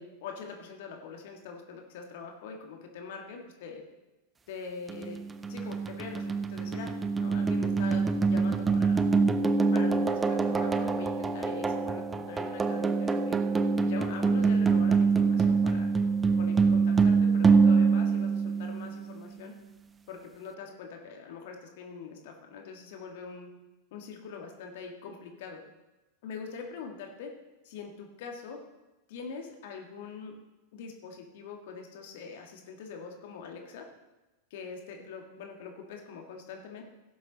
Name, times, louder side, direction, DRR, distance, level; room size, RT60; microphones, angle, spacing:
voice 1, 0.0-3.8 4.5-5.2 5.5-9.0 9.7-13.4 13.8-15.9 16.3-19.5 20.1-23.5 23.9-25.6 26.2-27.3 27.6-28.6 29.1-30.3 30.7-33.9 34.5-36.8, left 5 dB, 50° left, 2 dB, 1.9 m, -43 dB
sound 1, 4.9-19.1, right 4 dB, 15° right, 0.6 m, -25 dB
16.5 x 7.4 x 4.1 m, 1.1 s
figure-of-eight pair, 90°, 0 cm